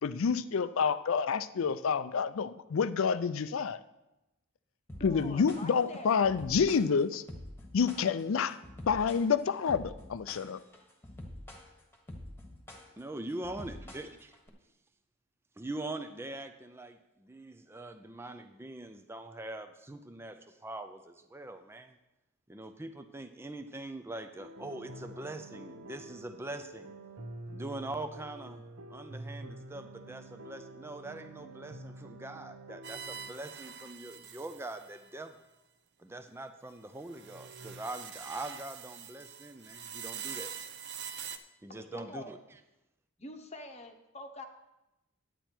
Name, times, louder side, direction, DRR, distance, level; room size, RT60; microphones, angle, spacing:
voice 1, 0.0-3.8 5.0-7.2 7.7-8.6 8.9-10.6, left 6 dB, 65° left, 14 dB, 0.4 m, -28 dB
sound 1, 4.9-14.5, left 1 dB, 10° left, 1.4 m, -47 dB
voice 2, 5.0-6.1 41.7-42.3 43.2-44.5, left 1 dB, 30° left, 6 dB, 0.9 m, -45 dB
voice 3, 13.0-14.1 15.6-21.9 22.5-26.9 27.5-28.6 28.9-35.4 36.0-40.5 41.6-42.4, right 2 dB, 10° right, 8 dB, 0.4 m, -43 dB
sound 2, 24.4-33.3, right 2 dB, 70° right, 1.0 m, -47 dB
sound 3, 32.8-35.1 37.0-41.4, right 7 dB, 55° right, 0.6 m, -44 dB
10.0 x 9.1 x 4.4 m, 0.95 s
head